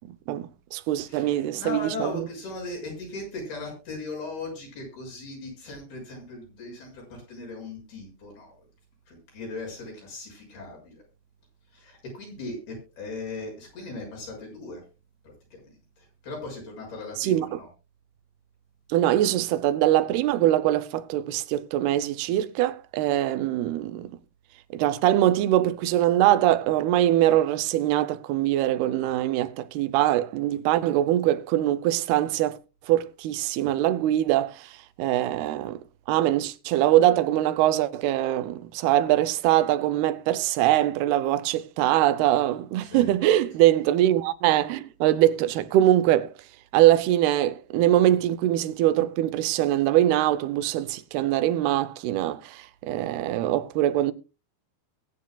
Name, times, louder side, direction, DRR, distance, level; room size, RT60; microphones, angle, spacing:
voice 1, 0.1-2.3 17.2-17.6 18.9-24.2 24.7-32.6 32.9-35.8 36.1-46.3 46.7-54.1, right 13 dB, 80° right, 2.7 m, -23 dB
voice 2, 1.0-7.0 7.3-8.5 9.1-11.0 11.7-14.8 15.2-17.7 42.8-43.2 43.6-43.7, left 2 dB, 70° left, 8.5 m, -38 dB
21.5 x 9.6 x 2.3 m
omnidirectional pair, 4.6 m